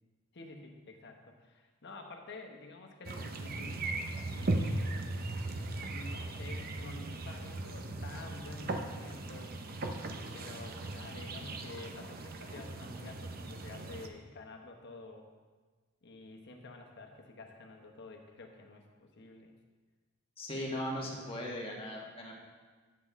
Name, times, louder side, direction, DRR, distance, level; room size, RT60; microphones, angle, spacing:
voice 1, 0.3-3.8 4.3-5.2 5.9-9.5 10.3-15.3 16.0-19.5 20.6-20.8, left 3 dB, 55° left, 3 dB, 1.0 m, -50 dB
sound 1, 3.1-14.1, right 2 dB, 45° right, 0.7 m, -38 dB
voice 2, 20.4-22.3, equal, 30° left, -2 dB, 1.5 m, -38 dB
9.4 x 7.7 x 3.6 m, 1.4 s
head